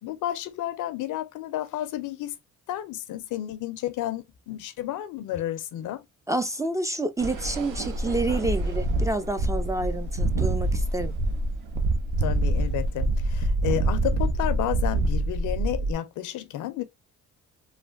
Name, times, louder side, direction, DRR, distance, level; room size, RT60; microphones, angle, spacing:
voice 1, 0.0-2.4 2.7-6.0 12.2-16.8, left 13 dB, 80° left, 0.5 m, -31 dB
voice 2, 6.3-11.1, right 2 dB, 10° right, 0.3 m, -29 dB
sound 1, 7.2-15.9, right 2 dB, 80° right, 0.7 m, -26 dB
3.1 x 2.2 x 2.5 m
cardioid pair, 90°, 30 cm